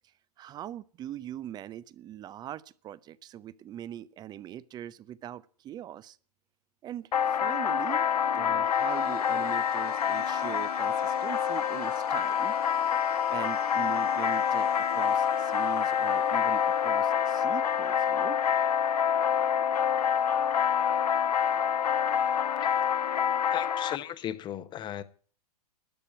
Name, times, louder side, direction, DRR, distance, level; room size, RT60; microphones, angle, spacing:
voice 1, 0.4-6.2 6.8-12.5 13.3-18.4, right 11 dB, 20° right, 0.5 m, -41 dB
sound 1, 7.1-24.0, left 8 dB, 85° left, 0.5 m, -27 dB
sound 2, 8.6-18.6, right 7 dB, 75° right, 2.8 m, -53 dB
voice 2, 23.5-25.0, left 11 dB, 25° left, 0.9 m, -36 dB
12.5 x 6.9 x 9.0 m
hypercardioid pair, 120°, 20 cm